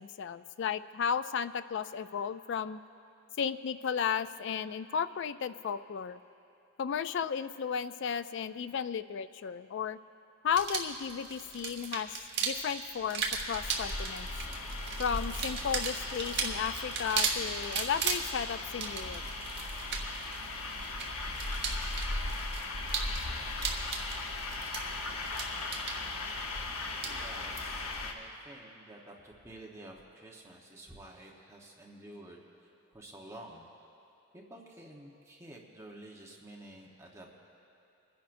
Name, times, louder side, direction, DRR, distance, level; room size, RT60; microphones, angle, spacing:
voice 1, 0.0-2.8 3.4-6.2 6.8-10.0 10.4-12.2 12.4-14.3 15.0-19.2, left 7 dB, 55° left, 13 dB, 0.3 m, -34 dB
sound 1, 10.5-27.7, right 5 dB, 50° right, 1.2 m, -37 dB
sound 2, 13.0-28.1, left 2 dB, 75° left, 0.9 m, -38 dB
voice 2, 27.0-33.7 34.3-37.3, right 1 dB, 15° right, -1 dB, 0.9 m, -50 dB
29.5 x 10.5 x 2.6 m, 2.8 s
head